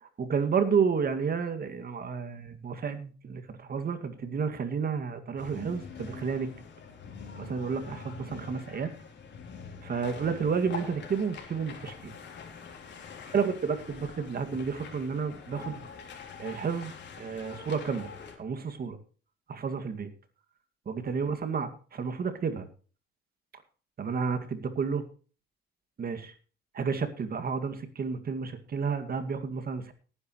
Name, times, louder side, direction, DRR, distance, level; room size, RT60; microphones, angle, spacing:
voice 1, 0.0-6.5 7.3-8.9 9.8-12.1 13.3-15.8 16.4-16.9 17.2-18.1 18.4-19.0 19.5-20.1 20.9-22.7 24.0-25.1 26.0-26.3 26.7-29.9, right 6 dB, 50° right, 8 dB, 2.2 m, -31 dB
sound 1, 5.4-18.4, left 6 dB, 60° left, 3.6 m, -44 dB
18.0 x 9.9 x 3.2 m, 0.38 s
cardioid pair, 90°, 20 cm